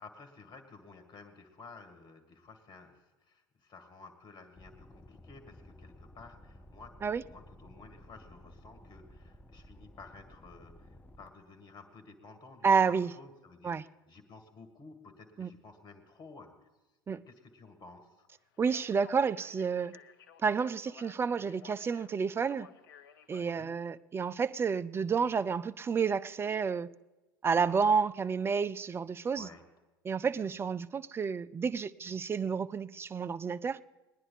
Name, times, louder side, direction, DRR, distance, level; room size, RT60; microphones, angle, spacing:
voice 1, 0.0-16.5 17.3-18.3 23.4-23.7 27.5-27.8 29.3-29.6, left 4 dB, 35° left, 2.0 m, -53 dB
sound 1, 4.6-11.3, left 1 dB, 15° left, 0.8 m, -55 dB
voice 2, 12.6-13.1 13.6-13.8 15.4-15.5 17.1-17.2 18.6-20.0 20.4-22.7 23.3-26.9 27.4-29.5 30.0-33.8, right 6 dB, 20° right, 0.4 m, -30 dB
Speech, 18.5-23.9, left 8 dB, 65° left, 0.7 m, -56 dB
20.0 x 10.0 x 4.0 m
figure-of-eight pair, 75°, 12 cm